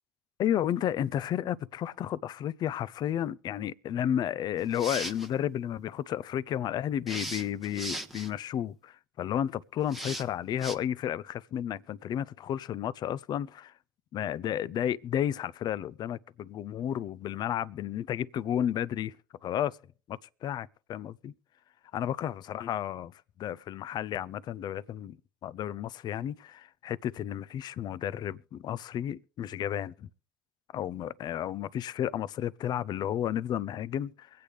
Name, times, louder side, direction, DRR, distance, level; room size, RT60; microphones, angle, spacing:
voice 1, 0.4-13.7 14.1-19.1 19.4-19.8 20.1-21.3 21.9-23.1 23.4-25.2 25.4-30.1 30.7-34.3, left 10 dB, 45° left, 0.5 m, -32 dB
sound 1, 4.6-5.3 7.1-8.3 9.9-10.2 10.6-10.8, right 1 dB, ahead, 1.0 m, -37 dB
24.0 x 8.6 x 3.3 m
hypercardioid pair, 75°, 10 cm